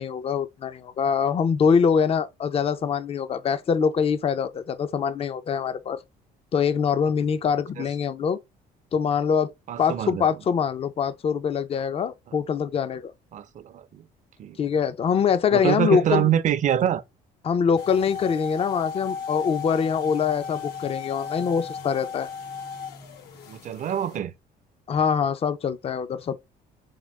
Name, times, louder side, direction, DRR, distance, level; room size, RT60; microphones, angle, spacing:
voice 1, 0.0-6.0 6.5-8.4 8.9-9.5 9.8-13.1 14.6-16.3 17.4-22.3 24.9-26.4, left 6 dB, 35° left, 0.5 m, -24 dB
voice 2, 9.7-10.3 13.3-14.0 14.4-14.6 15.5-17.0 23.5-24.3, right 10 dB, 45° right, 0.6 m, -25 dB
sound 1, 17.8-24.2, left 6 dB, 75° left, 1.0 m, -35 dB
3.7 x 3.4 x 3.1 m
cardioid pair, 110°, 17 cm